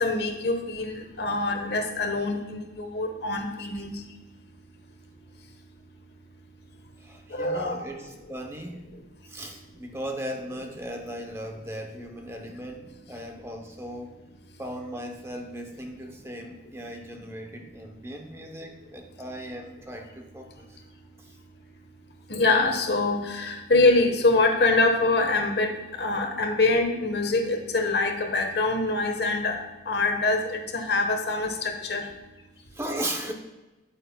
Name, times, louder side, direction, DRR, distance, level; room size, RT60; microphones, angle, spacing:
voice 1, 0.0-3.9 7.3-7.8 22.3-25.7 26.0-29.6 29.9-32.0, left 2 dB, 65° left, 4 dB, 1.1 m, -24 dB
voice 2, 7.0-8.9 9.3-14.2 14.6-20.8 21.2-21.4 32.7-33.3, right 1 dB, 15° right, 3 dB, 0.7 m, -37 dB
9.2 x 8.9 x 2.2 m, 1.1 s
head